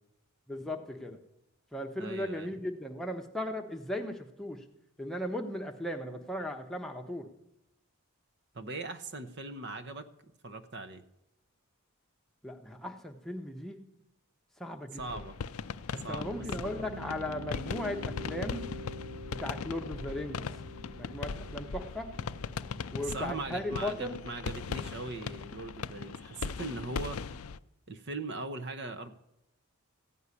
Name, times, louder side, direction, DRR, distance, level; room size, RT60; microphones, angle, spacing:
voice 1, 0.5-1.2 1.7-4.6 5.0-7.3 12.4-13.8 14.6-15.0 15.9-18.6 19.4-20.5 21.0-22.1 22.9-24.1, left 1 dB, ahead, 3 dB, 0.9 m, -37 dB
voice 2, 2.0-2.6 8.5-10.1 10.4-11.0 14.9-15.4 16.0-16.6 23.0-27.2 27.9-29.1, right 3 dB, 50° right, 9 dB, 0.8 m, -40 dB
sound 1, 15.0-27.6, left 5 dB, 80° left, 0.5 m, -39 dB
Piano, 16.2-23.7, left 1 dB, 70° right, 1.2 m, -46 dB
Telephone, 16.7-17.8, left 3 dB, 35° left, 0.8 m, -48 dB
15.0 x 5.5 x 9.7 m, 0.88 s
head